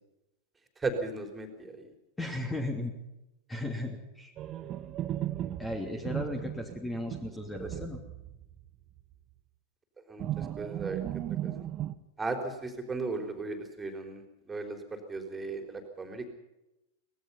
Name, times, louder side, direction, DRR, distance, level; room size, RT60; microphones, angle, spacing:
voice 1, 0.8-1.9 7.6-7.7 10.1-11.0 11.4-11.5 12.2-14.2 14.5-16.3, right 3 dB, 15° right, 5 dB, 3.9 m, -36 dB
voice 2, 2.2-2.9 3.5-4.3 5.6-8.0, left 1 dB, 10° left, 3 dB, 3.0 m, -35 dB
sound 1, 4.4-8.7 9.0-9.1 10.2-11.9, right 12 dB, 30° right, 1.3 m, -36 dB
24.0 x 19.5 x 5.7 m, 0.92 s
figure-of-eight pair, 90°, 0 cm